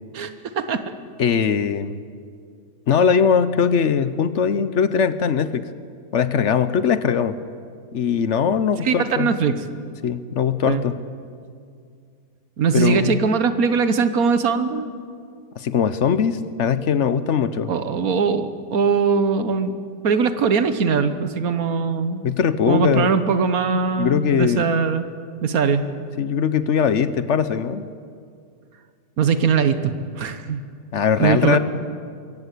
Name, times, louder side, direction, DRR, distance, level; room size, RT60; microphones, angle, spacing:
voice 1, 0.1-0.8 8.8-9.6 10.6-10.8 12.6-14.9 17.7-19.7 20.0-22.2 22.7-25.0 25.4-25.8 29.2-29.9 30.2-30.6 31.2-31.6, right 5 dB, 80° right, 11 dB, 1.6 m, -21 dB
voice 2, 1.2-2.0 2.9-5.6 6.1-7.3 7.9-9.3 10.0-11.0 12.7-13.2 15.6-17.7 22.2-23.1 24.0-24.7 26.2-27.9 30.9-31.6, left 7 dB, 60° left, 14 dB, 1.0 m, -20 dB
23.0 x 16.5 x 8.4 m, 2.2 s
omnidirectional pair, 1.5 m